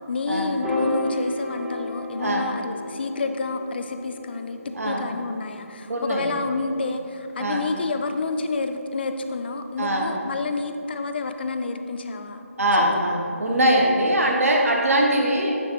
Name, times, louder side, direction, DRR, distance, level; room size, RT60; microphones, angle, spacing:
voice 1, 0.1-12.4, left 3 dB, 45° left, 7 dB, 0.3 m, -29 dB
Piano, 0.6-7.0, left 1 dB, 5° right, 0.9 m, -33 dB
voice 2, 2.2-2.5 4.7-5.1 5.9-6.3 7.4-7.6 9.8-10.2 12.6-15.6, right 1 dB, 75° right, 0 dB, 0.9 m, -22 dB
9.3 x 4.0 x 2.9 m, 2.7 s
figure-of-eight pair, 155°, 8 cm